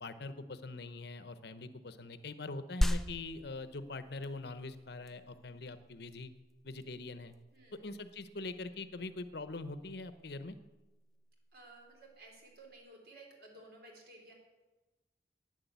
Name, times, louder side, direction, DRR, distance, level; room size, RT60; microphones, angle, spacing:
voice 1, 0.0-6.3 6.6-7.3 7.8-10.6, left 3 dB, 65° left, 12 dB, 0.9 m, -43 dB
sound 1, 2.8-12.8, equal, ahead, 0.5 m, -40 dB
voice 2, 7.5-7.9 11.5-14.3, right 2 dB, 60° right, 1 dB, 3.6 m, -55 dB
11.5 x 9.9 x 8.2 m, 1.2 s
head